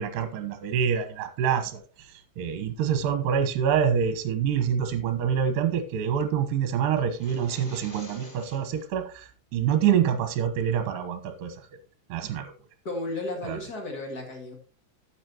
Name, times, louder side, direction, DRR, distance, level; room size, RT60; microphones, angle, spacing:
voice 1, 0.0-11.6 12.1-12.5 13.4-13.6, right 8 dB, 65° right, 8 dB, 2.5 m, -26 dB
sound 1, 7.1-8.9, equal, 15° left, 2.7 m, -47 dB
voice 2, 12.8-14.6, left 2 dB, 40° left, 2 dB, 1.4 m, -33 dB
12.0 x 8.2 x 2.9 m, 0.35 s
omnidirectional pair, 4.8 m